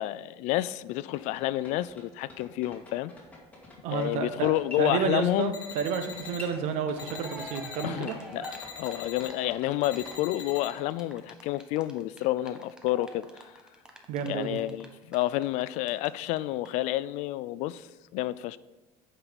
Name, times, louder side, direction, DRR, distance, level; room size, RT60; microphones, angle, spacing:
voice 1, 0.0-3.1 3.9-5.5 7.8-8.5 8.8-13.3 14.2-17.9 18.1-18.6, left 15 dB, 65° left, 0.4 m, -29 dB
sound 1, 0.9-10.1, left 2 dB, 10° left, 2.2 m, -47 dB
voice 2, 3.8-4.5 4.8-8.1 14.1-14.6, right 6 dB, 65° right, 1.0 m, -30 dB
sound 2, 5.5-6.4 7.0-7.9 8.4-9.3 9.8-10.7, left 7 dB, 30° left, 1.1 m, -43 dB
Cheering, 6.7-6.8 6.9-16.1 16.3-16.4 16.6-16.7, equal, 5° right, 0.9 m, -46 dB
8.4 x 5.6 x 5.2 m
cardioid pair, 140°, 13 cm